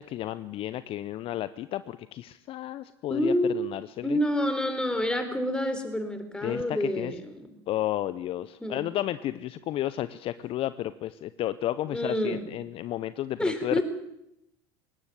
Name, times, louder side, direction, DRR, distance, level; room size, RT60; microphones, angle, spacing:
voice 1, 0.0-4.2 6.4-7.1 7.7-13.8, left 13 dB, 45° left, 15 dB, 0.7 m, -32 dB
voice 2, 3.1-3.6 4.0-7.5 8.6-8.8 11.9-12.4 13.4-13.8, left 1 dB, 5° left, 7 dB, 4.0 m, -28 dB
20.0 x 18.0 x 7.7 m, 0.81 s
hypercardioid pair, 80°, 13 cm